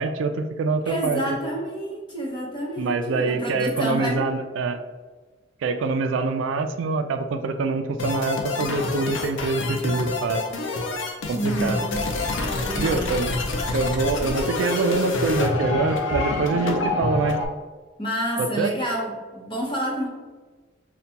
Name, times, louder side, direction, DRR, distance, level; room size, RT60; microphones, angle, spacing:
voice 1, 0.0-1.2 2.8-4.8 5.6-10.4 11.3-11.8 12.8-13.3 13.7-17.4 18.4-18.7, right 4 dB, 80° right, 8 dB, 0.3 m, -25 dB
voice 2, 0.8-4.3 11.3-12.1 12.6-13.2 18.0-20.1, equal, 25° left, -2 dB, 0.8 m, -29 dB
sound 1, 8.0-17.5, left 2 dB, 80° left, 0.5 m, -27 dB
5.5 x 2.2 x 2.7 m, 1.3 s
head